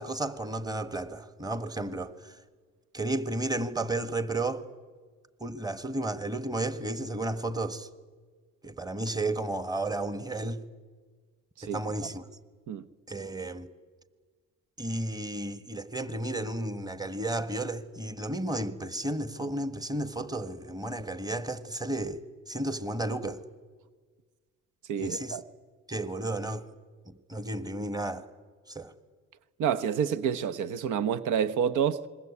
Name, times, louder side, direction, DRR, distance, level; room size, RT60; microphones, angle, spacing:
voice 1, 0.0-2.3 2.9-4.6 5.4-7.9 8.6-10.6 11.6-12.3 13.1-13.7 14.8-22.2 22.5-23.4 25.0-25.4 25.9-26.6 27.3-28.2 28.7-28.9, right 2 dB, 15° right, 1.6 m, -33 dB
voice 2, 24.9-25.4 29.6-32.0, right 8 dB, 80° right, 1.0 m, -28 dB
27.5 x 21.5 x 8.4 m
cardioid pair, 90°, 30 cm